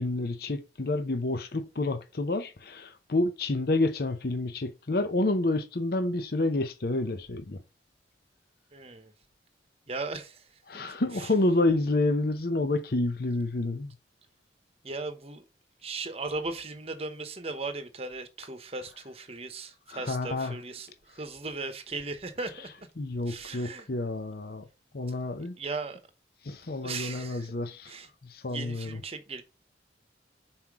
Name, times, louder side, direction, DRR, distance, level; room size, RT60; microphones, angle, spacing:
voice 1, 0.0-7.6 10.7-13.9 19.9-20.6 23.0-24.7 24.9-25.6 26.4-29.0, left 2 dB, 55° left, 0.8 m, -29 dB
voice 2, 8.7-9.1 9.9-10.5 10.8-11.3 14.8-15.4 15.8-22.7 23.3-23.9 25.6-26.0 26.8-27.5 27.9-28.1 28.5-29.4, right 3 dB, 35° right, 1.0 m, -37 dB
5.7 x 4.4 x 4.7 m
head